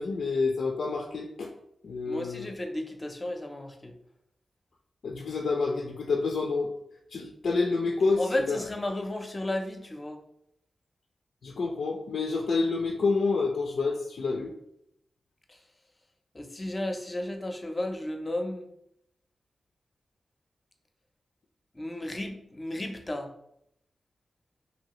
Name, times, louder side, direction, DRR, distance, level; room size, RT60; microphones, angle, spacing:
voice 1, 0.0-1.5 1.8-2.5 5.0-6.7 7.1-8.6 11.4-14.5, left 4 dB, 80° left, 1 dB, 0.3 m, -28 dB
voice 2, 2.1-3.9 8.2-10.2 15.5-15.6 16.3-18.7 21.7-23.3, left 1 dB, 30° left, 4 dB, 0.5 m, -33 dB
2.7 x 2.7 x 3.0 m, 0.77 s
cardioid pair, 55°, 0 cm